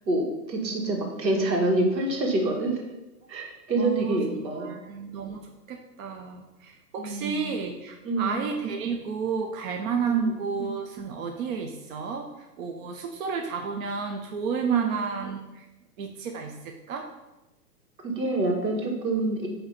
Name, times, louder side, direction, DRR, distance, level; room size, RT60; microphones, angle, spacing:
voice 1, 0.1-2.8 3.3-4.7 7.0-7.5 8.0-8.5 10.0-10.3 14.7-15.1 18.0-19.5, right 2 dB, 85° right, 1 dB, 2.0 m, -27 dB
voice 2, 3.8-15.7 16.0-17.1, right 5 dB, 55° right, 3 dB, 0.8 m, -32 dB
8.8 x 2.9 x 5.1 m, 1.0 s
hypercardioid pair, 140°, 49 cm